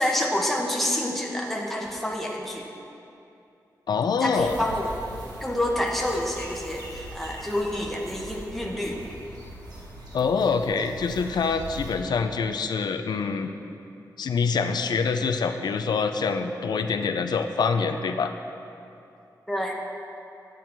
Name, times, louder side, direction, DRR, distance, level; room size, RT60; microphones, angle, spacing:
voice 1, 0.0-2.7 4.2-4.9 5.4-9.0 19.5-19.7, left 1 dB, 5° left, -2 dB, 1.2 m, -28 dB
voice 2, 3.9-4.6 10.1-13.5 14.2-18.3, left 5 dB, 90° left, 6 dB, 0.5 m, -25 dB
sound 1, 4.3-12.0, right 1 dB, 75° right, 1.7 m, -41 dB
10.0 x 9.1 x 4.6 m, 2.7 s
wide cardioid pair, 140°, 7 cm